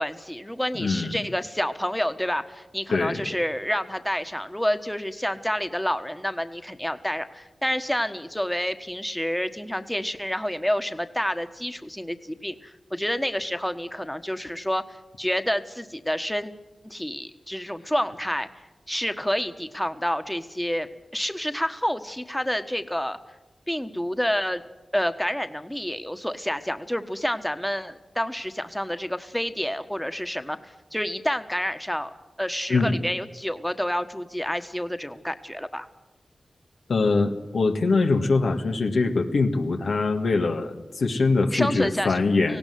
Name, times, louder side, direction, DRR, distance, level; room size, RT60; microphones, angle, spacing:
voice 1, 0.0-14.8 15.2-16.5 16.8-18.5 18.9-23.2 23.7-24.6 24.9-32.1 32.4-35.9 41.5-42.2 42.5-42.6, equal, 5° left, 9 dB, 1.4 m, -28 dB
voice 2, 0.8-1.1 2.9-3.3 32.7-33.0 36.9-42.6, left 3 dB, 85° left, 4 dB, 1.7 m, -23 dB
18.5 x 17.0 x 9.4 m, 1.0 s
cardioid pair, 50°, 0 cm